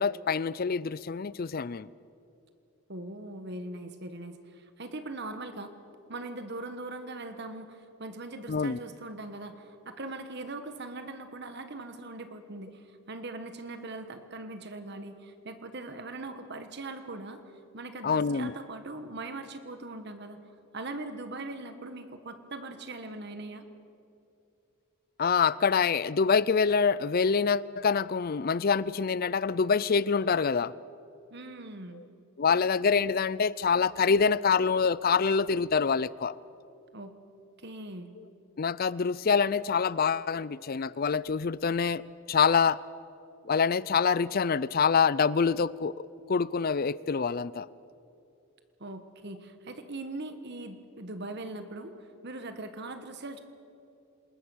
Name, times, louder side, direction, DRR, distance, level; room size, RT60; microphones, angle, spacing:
voice 1, 0.0-1.9 8.5-8.8 18.0-18.5 25.2-30.7 31.9-32.0 32.4-36.4 38.2-38.3 38.6-42.0 42.3-42.8 43.5-47.7, left 5 dB, 45° left, 0.5 m, -26 dB
voice 2, 2.9-5.7 6.1-17.4 17.7-20.4 20.7-23.6 31.3-32.0 36.9-37.2 37.6-38.1 48.8-53.4, right 2 dB, 50° right, 1.3 m, -40 dB
27.5 x 20.5 x 6.4 m
head